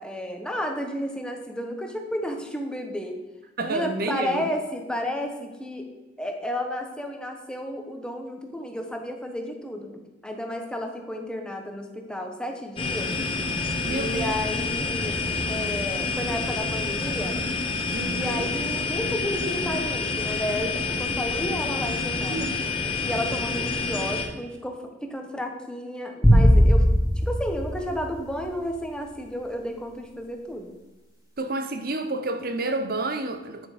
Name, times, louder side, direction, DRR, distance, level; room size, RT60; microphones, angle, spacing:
voice 1, 0.0-3.2 3.6-5.8 6.2-13.1 13.9-17.4 18.1-22.5 23.0-24.8 25.1-26.8 27.2-30.8, equal, 5° left, 1.1 m, -32 dB
voice 2, 3.6-4.4 13.8-14.4 17.9-18.5 22.3-22.6 31.4-33.7, right 2 dB, 50° right, 0.9 m, -29 dB
sound 1, 12.8-24.2, left 4 dB, 30° left, 1.2 m, -28 dB
sound 2, 26.2-28.7, equal, 20° right, 2.4 m, -19 dB
9.5 x 6.8 x 5.0 m
head